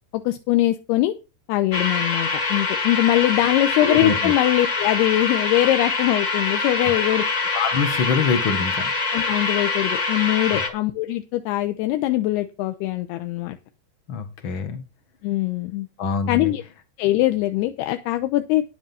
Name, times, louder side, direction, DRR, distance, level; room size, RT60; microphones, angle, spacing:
voice 1, 0.1-1.1 1.5-7.2 9.1-13.6 15.2-15.9 16.3-16.6 17.0-18.6, left 15 dB, 80° left, 8 dB, 2.8 m, -22 dB
sound 1, 1.7-10.7, left 4 dB, 45° left, 1.6 m, -24 dB
voice 2, 3.8-4.3 6.8-6.9 7.5-8.9 10.5-10.7 14.1-14.8 16.0-16.5, left 5 dB, 60° left, 8 dB, 1.3 m, -24 dB
10.0 x 7.7 x 5.6 m, 0.28 s
omnidirectional pair, 4.8 m